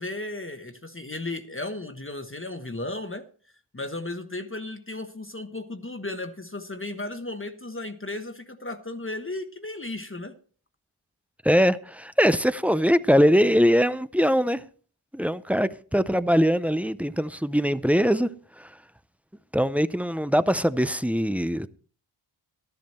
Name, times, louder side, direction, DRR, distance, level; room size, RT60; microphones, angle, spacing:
voice 1, 0.0-3.3 3.7-10.4, left 2 dB, 25° left, 1.2 m, -35 dB
voice 2, 11.4-14.6 15.1-18.3 18.6-18.8 19.5-21.7, equal, 5° right, 0.5 m, -22 dB
12.5 x 10.5 x 4.3 m
wide cardioid pair, 55°, 49 cm